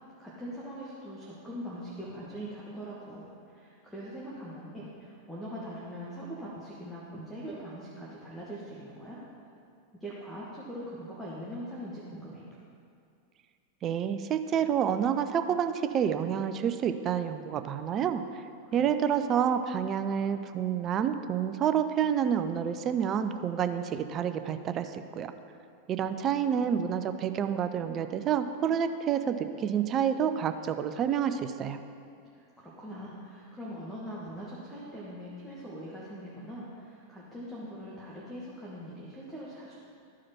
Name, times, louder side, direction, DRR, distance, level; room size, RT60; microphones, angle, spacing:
voice 1, 0.2-9.2 10.0-12.5 18.6-19.0 32.4-39.7, equal, 5° left, -7 dB, 1.5 m, -42 dB
voice 2, 13.8-18.4 18.7-25.3 25.9-31.8, right 8 dB, 30° right, 9 dB, 0.4 m, -28 dB
13.5 x 4.9 x 4.3 m, 2.5 s
figure-of-eight pair, 90°, 0 cm